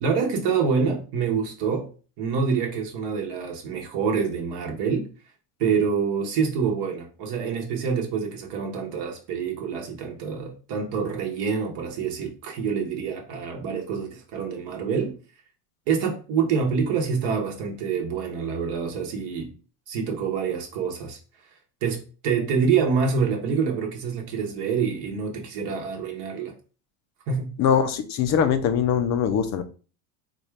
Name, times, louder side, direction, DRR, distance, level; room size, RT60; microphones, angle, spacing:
voice 1, 0.0-1.9 2.2-5.1 5.6-15.2 15.9-19.5 19.9-21.2 21.8-26.5 27.3-27.5, right 6 dB, 55° right, 1.0 m, -26 dB
voice 2, 27.6-29.6, left 8 dB, 40° left, 0.5 m, -22 dB
4.2 x 2.3 x 3.2 m
supercardioid pair, 120°, 47 cm